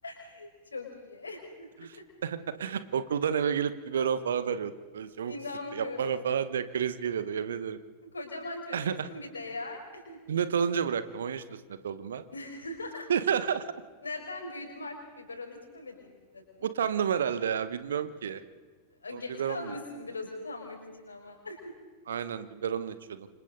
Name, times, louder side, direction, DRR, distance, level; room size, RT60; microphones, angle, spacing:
voice 1, 0.0-2.0 5.3-6.2 8.1-10.2 12.3-13.1 14.0-16.7 19.0-21.7, left 2 dB, 75° left, 2 dB, 5.7 m, -40 dB
voice 2, 1.8-5.3 5.7-7.8 8.7-9.1 10.3-12.2 13.1-13.6 16.6-18.4 19.1-19.7 22.1-23.3, right 7 dB, 65° right, 13 dB, 1.3 m, -30 dB
29.5 x 25.5 x 4.0 m, 1.4 s
figure-of-eight pair, 90°, 0 cm